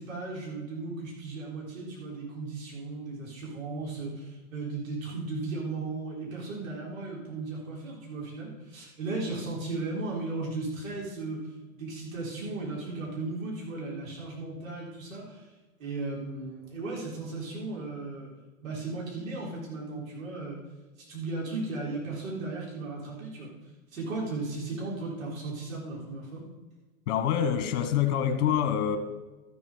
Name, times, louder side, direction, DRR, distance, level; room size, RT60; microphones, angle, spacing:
voice 1, 0.0-11.5 11.8-15.5 15.8-18.3 18.6-20.6 21.0-23.5 23.9-26.4, right 3 dB, 70° right, -3 dB, 4.0 m, -36 dB
voice 2, 27.1-29.0, left 9 dB, 55° left, 7 dB, 1.5 m, -26 dB
13.5 x 7.2 x 5.0 m, 1.2 s
hypercardioid pair, 125°, 42 cm